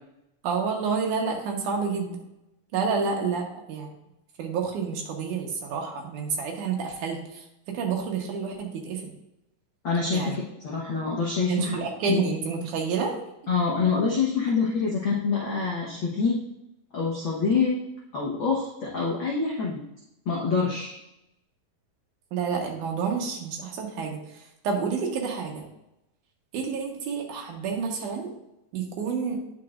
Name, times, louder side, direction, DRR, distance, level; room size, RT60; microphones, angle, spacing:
voice 1, 0.4-2.2 2.7-3.9 4.4-7.2 7.7-9.1 10.1-10.4 11.5-13.2 22.3-24.2 24.6-25.6 26.5-28.3 28.7-29.4, right 5 dB, 70° right, 1 dB, 2.6 m, -29 dB
voice 2, 9.8-11.8 12.1-12.2 13.5-16.4 16.9-17.8 18.1-19.8 20.2-21.0, left 5 dB, 65° left, -5 dB, 1.2 m, -26 dB
9.3 x 6.1 x 2.5 m, 0.88 s
omnidirectional pair, 3.9 m